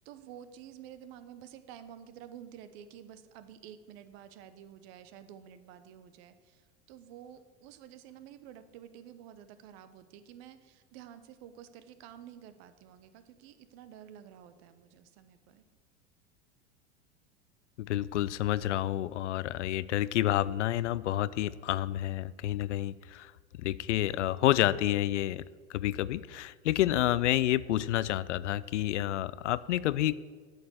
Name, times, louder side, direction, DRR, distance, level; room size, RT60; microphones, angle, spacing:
voice 1, 0.0-15.6, right 10 dB, 60° right, 12 dB, 1.0 m, -50 dB
voice 2, 17.8-23.3 23.6-25.4 25.7-30.1, left 13 dB, 85° left, 19 dB, 0.5 m, -29 dB
8.6 x 6.7 x 7.8 m, 1.5 s
hypercardioid pair, 90°, 34 cm